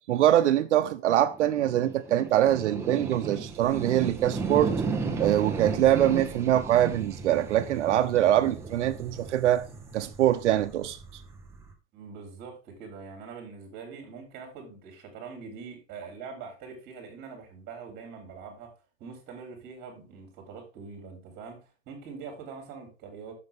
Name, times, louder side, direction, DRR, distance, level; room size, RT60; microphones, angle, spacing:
voice 1, 0.1-4.7 5.2-9.6 9.9-11.0, right 12 dB, 90° right, 0.8 m, -23 dB
sound 1, 1.3-11.7, right 4 dB, 10° right, 1.0 m, -35 dB
voice 2, 11.9-18.7 19.0-21.6 21.9-23.3, right 5 dB, 30° right, 3.8 m, -43 dB
9.6 x 7.0 x 3.6 m
supercardioid pair, 160°, 34 cm